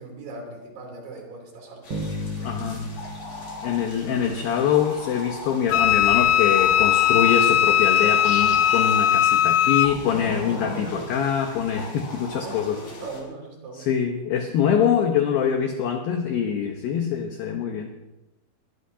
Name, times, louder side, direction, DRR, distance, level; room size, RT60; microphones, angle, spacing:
voice 1, 0.0-2.5 3.9-4.4 10.9-11.1 12.4-13.9, right 3 dB, 65° right, 1 dB, 5.4 m, -40 dB
sound 1, 1.8-13.2, left 2 dB, 45° left, 5.9 m, -38 dB
Bass guitar, 1.9-5.0, left 1 dB, 35° right, 2.8 m, -35 dB
voice 2, 2.4-3.0 3.6-12.8 13.7-17.9, left 8 dB, 70° left, 3 dB, 2.6 m, -24 dB
Wind instrument woodwind instrument, 5.7-10.0, left 10 dB, 85° left, 2.1 m, -19 dB
22.5 x 19.0 x 2.9 m, 1.0 s
omnidirectional pair, 5.0 m